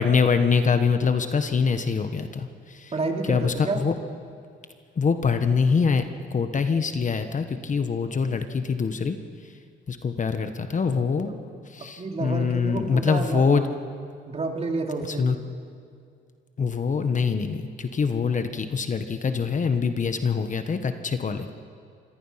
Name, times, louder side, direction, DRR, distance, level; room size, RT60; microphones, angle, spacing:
voice 1, 0.0-2.9 3.3-3.9 5.0-6.0 6.3-9.2 9.9-11.4 11.7-13.7 15.2-15.4 16.6-21.5, left 5 dB, 40° left, 8 dB, 1.4 m, -24 dB
voice 2, 2.9-3.9 11.2-11.3 12.0-13.6 14.3-15.4, right 3 dB, 30° right, 2 dB, 3.2 m, -29 dB
26.0 x 21.0 x 5.9 m, 2.3 s
cardioid pair, 90°, 20 cm